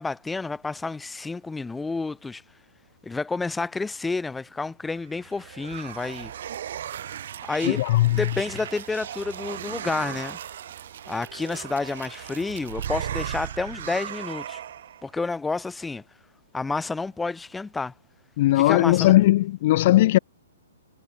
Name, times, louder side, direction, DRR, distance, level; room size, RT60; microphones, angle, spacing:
voice 1, 0.0-2.4 3.0-6.3 7.5-7.8 8.1-10.4 11.1-14.6 15.0-16.0 16.5-17.9 18.6-19.2, left 3 dB, 10° left, 0.7 m, -30 dB
sound 1, 5.0-15.0, right 10 dB, 55° right, 0.9 m, -36 dB
voice 2, 7.6-8.2 18.4-20.2, left 16 dB, 45° left, 0.4 m, -18 dB
figure-of-eight pair, 120°, 0 cm